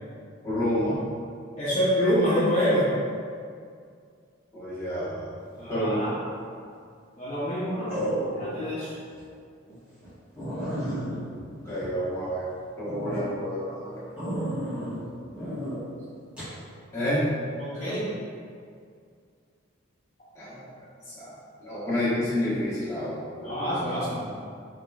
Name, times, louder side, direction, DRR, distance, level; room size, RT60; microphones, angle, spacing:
voice 1, 0.4-0.9 4.5-5.2 5.7-6.0 11.6-12.5 12.8-13.9 16.9-17.3 20.3-20.6 21.1-21.3 21.6-23.8, equal, 15° left, -12 dB, 1.3 m, -29 dB
voice 2, 1.6-2.9 5.6-6.1 7.2-7.9 8.3-8.9 14.9-15.6 17.6-18.1 23.4-24.2, equal, 35° left, -13 dB, 0.8 m, -27 dB
sound 1, 6.3-6.7 7.9-8.6 9.1-9.2 9.7-9.8 10.0-10.1 10.4-12.4 12.8-13.2 14.2-15.0 15.4-15.8 16.4-16.5, right 1 dB, 5° right, 1.4 m, -32 dB
4.2 x 3.2 x 2.4 m, 2.2 s
head